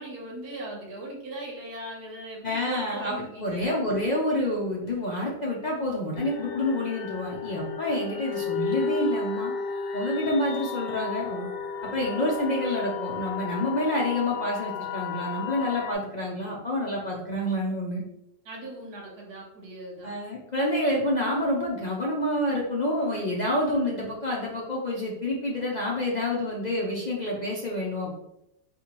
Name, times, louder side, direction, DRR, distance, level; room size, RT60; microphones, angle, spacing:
voice 1, 0.0-3.7 18.4-20.1, right 1 dB, 90° right, -3 dB, 1.6 m, -39 dB
voice 2, 2.4-9.5 9.9-11.5 11.8-18.0 20.0-28.1, left 1 dB, 45° left, -4 dB, 0.5 m, -28 dB
sound 1, 6.2-15.9, left 5 dB, 90° left, 1.2 m, -33 dB
4.2 x 3.3 x 3.0 m, 0.83 s
omnidirectional pair, 1.7 m